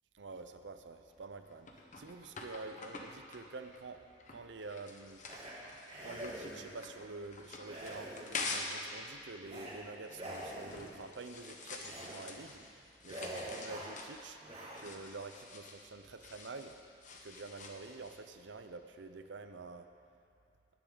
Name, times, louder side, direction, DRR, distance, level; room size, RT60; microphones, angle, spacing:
voice 1, 0.1-1.7 2.0-4.0 4.3-5.2 6.0-12.6 13.0-14.4 14.8-16.7 17.2-19.9, right 3 dB, 90° right, 8 dB, 0.7 m, -48 dB
sound 1, 1.1-8.8 9.2-18.2, left 3 dB, 45° left, 1.1 m, -47 dB
sound 2, 5.3-5.5 5.9-6.8 7.6-8.6 9.4-9.7 10.1-11.0 11.8-12.1 12.5-12.7 13.0-14.0 14.4-15.1, right 1 dB, 35° right, 2.6 m, -45 dB
17.5 x 10.0 x 4.0 m, 2.5 s
head